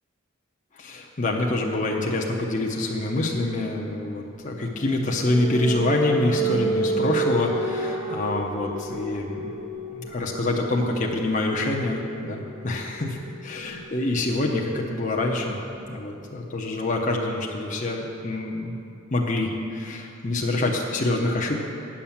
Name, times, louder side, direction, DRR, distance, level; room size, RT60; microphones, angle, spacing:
voice 1, 0.7-9.5 9.9-13.2 13.4-15.6 15.9-18.8 19.1-21.6, left 2 dB, 40° left, -1 dB, 0.8 m, -26 dB
sound 1, 4.4-15.9, right 2 dB, 20° right, 1.0 m, -31 dB
9.6 x 7.3 x 7.1 m, 2.7 s
head